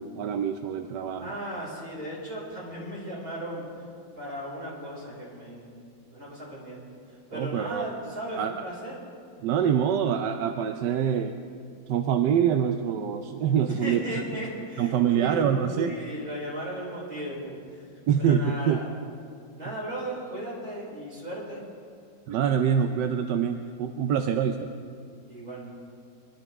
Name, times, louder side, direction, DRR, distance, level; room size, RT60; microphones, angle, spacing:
voice 1, 0.0-1.3 7.3-7.9 8.4-8.6 9.4-11.4 11.9-14.0 14.8-16.0 18.1-18.8 22.3-24.7, right 8 dB, 70° right, 6 dB, 1.2 m, -25 dB
voice 2, 1.2-3.8 4.2-5.6 6.1-6.8 7.1-9.0 13.7-18.9 19.5-21.6 25.3-25.7, right 1 dB, 45° right, -6 dB, 5.7 m, -36 dB
24.5 x 13.0 x 3.6 m, 2.3 s
omnidirectional pair, 2.1 m